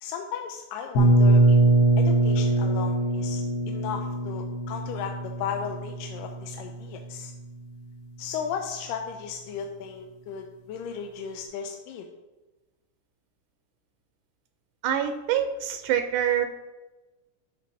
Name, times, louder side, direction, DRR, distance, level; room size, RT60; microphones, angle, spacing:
voice 1, 0.0-1.6 2.0-7.3 8.2-12.1, left 7 dB, 90° left, 4 dB, 2.3 m, -35 dB
sound 1, 0.9-6.7, right 2 dB, 60° left, 1.0 m, -22 dB
voice 2, 14.8-16.5, right 10 dB, 80° right, 9 dB, 2.1 m, -25 dB
12.0 x 5.3 x 4.1 m, 1.1 s
omnidirectional pair, 3.8 m